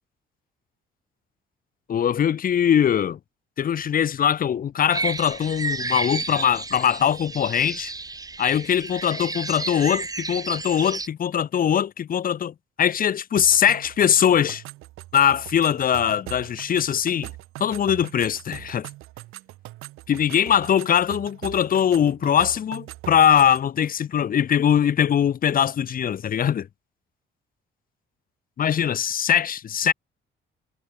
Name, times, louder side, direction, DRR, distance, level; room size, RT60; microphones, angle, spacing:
voice 1, 1.9-3.2 3.6-7.9 8.4-14.6 15.1-17.3 17.6-18.9 20.1-26.7 28.6-29.9, left 9 dB, 45° left, 0.6 m, -21 dB
sound 1, 4.9-11.1, right 3 dB, 15° right, 0.8 m, -32 dB
sound 2, 13.4-23.7, right 18 dB, 85° right, 0.6 m, -41 dB
cardioid pair, 85°, 21 cm